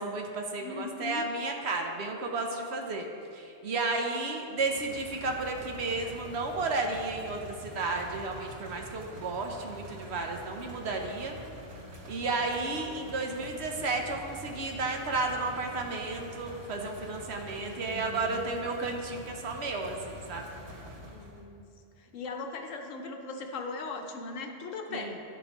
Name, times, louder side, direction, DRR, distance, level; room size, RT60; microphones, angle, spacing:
voice 1, 0.0-3.1 3.3-11.4 12.1-20.5 24.9-25.1, right 3 dB, 60° right, 2 dB, 0.9 m, -33 dB
voice 2, 0.6-1.3 17.5-18.4 21.0-21.7 22.0-25.2, left 4 dB, 75° left, 3 dB, 1.1 m, -39 dB
sound 1, 4.5-21.4, equal, 80° right, 1.5 m, -46 dB
12.0 x 5.0 x 3.0 m, 2.6 s
omnidirectional pair, 1.4 m